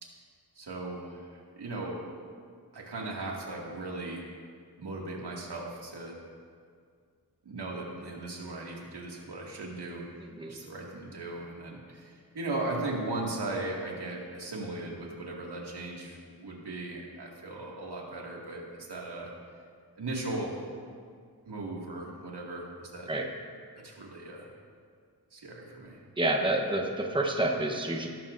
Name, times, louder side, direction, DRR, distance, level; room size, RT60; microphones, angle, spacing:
voice 1, 0.6-2.0 2.7-4.3 4.8-6.2 7.4-10.0 10.5-19.3 20.0-20.6 21.5-23.1 23.8-24.5 25.3-26.0, right 2 dB, 80° right, -2 dB, 2.2 m, -37 dB
voice 2, 10.2-10.6 23.1-23.3 26.2-28.1, right 1 dB, 10° right, 1 dB, 1.0 m, -29 dB
17.5 x 13.0 x 2.6 m, 2.1 s
wide cardioid pair, 105°, 39 cm